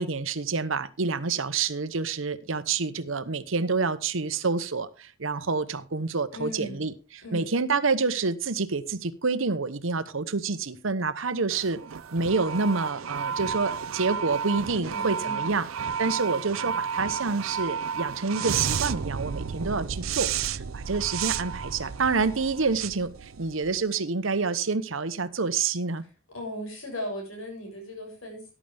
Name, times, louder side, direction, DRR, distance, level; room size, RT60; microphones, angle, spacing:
voice 1, 0.0-6.9 7.3-11.8 12.1-15.7 16.0-26.0, right 4 dB, 70° right, 13 dB, 1.0 m, -28 dB
voice 2, 6.3-6.9 7.2-7.5 14.7-15.5 26.3-28.5, equal, 80° left, 2 dB, 7.1 m, -37 dB
sound 1, 11.5-23.9, right 7 dB, 85° right, 0.6 m, -32 dB
14.5 x 11.0 x 3.4 m, 0.31 s
head